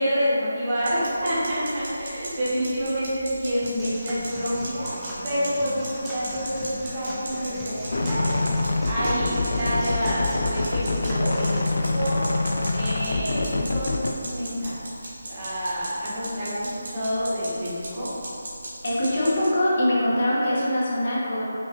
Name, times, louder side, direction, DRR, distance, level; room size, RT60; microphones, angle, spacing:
voice 1, 0.0-4.9 5.2-12.2 12.7-15.0 15.3-18.1, equal, 30° right, -10 dB, 1.0 m, -28 dB
sound 1, 0.8-19.5, right 1 dB, 60° right, 1.4 m, -38 dB
Human voice / Acoustic guitar / Drum, 3.6-11.6, equal, 5° right, 0.4 m, -38 dB
sound 2, 7.9-14.1, left 2 dB, 70° left, 0.4 m, -25 dB
voice 2, 18.8-21.4, left 1 dB, 50° left, -7 dB, 1.0 m, -23 dB
5.6 x 2.7 x 2.5 m, 2.7 s
figure-of-eight pair, 165°, 0 cm